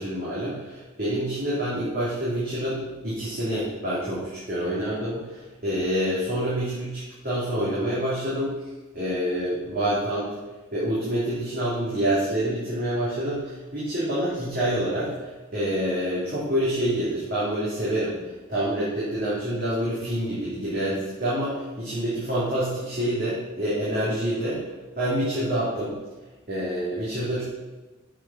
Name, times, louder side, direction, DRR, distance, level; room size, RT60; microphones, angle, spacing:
voice 1, 0.0-8.5 8.9-10.3 10.7-18.2 18.5-24.6 24.9-26.0 26.5-27.4, right 1 dB, 45° right, -10 dB, 3.0 m, -27 dB
7.4 x 7.2 x 5.8 m, 1.2 s
head